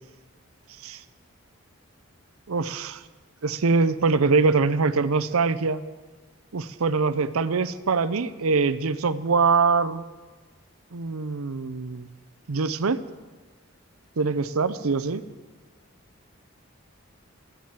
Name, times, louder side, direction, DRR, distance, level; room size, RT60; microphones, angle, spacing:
voice 1, 2.5-3.0 3.4-5.8 6.5-10.0 10.9-12.1 12.5-13.0 14.2-15.2, right 4 dB, 85° right, 13 dB, 0.6 m, -23 dB
14.5 x 7.5 x 8.8 m, 1.3 s
head